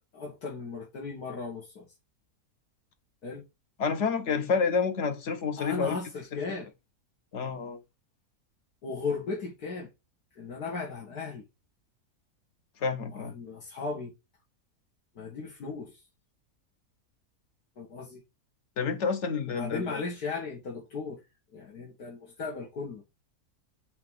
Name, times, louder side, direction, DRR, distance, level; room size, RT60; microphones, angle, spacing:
voice 1, 0.0-1.9 3.2-3.4 5.6-6.7 8.8-9.9 10.4-11.5 13.1-14.1 15.2-16.0 17.8-18.2 19.5-21.2 21.5-23.0, left 4 dB, 80° left, 2.2 m, -36 dB
voice 2, 3.8-6.0 6.3-6.4 7.3-7.8 12.8-13.3 18.8-20.0, left 5 dB, 55° left, 1.1 m, -29 dB
5.8 x 3.7 x 5.4 m
omnidirectional pair, 1.6 m